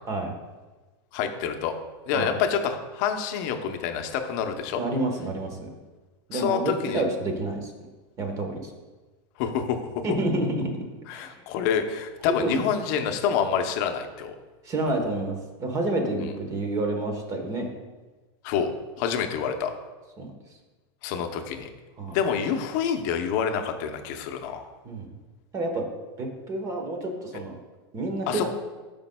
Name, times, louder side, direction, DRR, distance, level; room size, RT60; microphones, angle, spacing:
voice 1, 1.1-1.7 2.1-4.8 6.3-7.0 9.4-9.8 11.1-14.4 18.4-18.7 19.0-19.7 21.0-21.7 22.1-24.7 28.3-28.5, left 7 dB, 45° left, 6 dB, 0.7 m, -27 dB
voice 2, 4.8-5.7 6.3-7.7 8.2-8.7 10.0-10.7 11.1-11.4 12.4-12.6 14.6-17.7 20.2-20.3 22.0-22.2 24.8-25.1 25.5-25.9 26.2-27.6 27.9-28.5, right 2 dB, 25° right, 4 dB, 1.1 m, -29 dB
11.0 x 5.2 x 2.2 m, 1.2 s
supercardioid pair, 150°, 14 cm